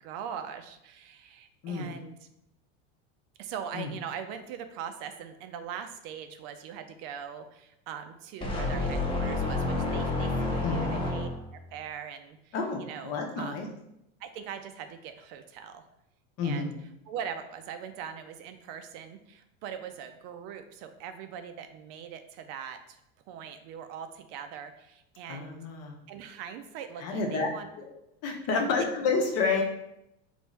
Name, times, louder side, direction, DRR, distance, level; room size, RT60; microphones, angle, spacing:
voice 1, 0.0-2.2 3.4-11.3 11.7-13.6 14.2-15.8 16.4-16.7 17.1-23.0 23.3-25.6 26.1-27.7 28.4-28.6, right 8 dB, 60° right, 9 dB, 0.4 m, -41 dB
sound 1, 8.4-11.6, left 2 dB, 15° left, 0.7 m, -29 dB
voice 2, 10.6-11.0 12.5-13.7 16.4-16.7 25.3-26.0 27.0-27.5 27.8-27.9 28.2-29.6, left 4 dB, 50° left, 1 dB, 0.8 m, -29 dB
3.2 x 2.6 x 3.1 m, 0.82 s
supercardioid pair, 115°, 33 cm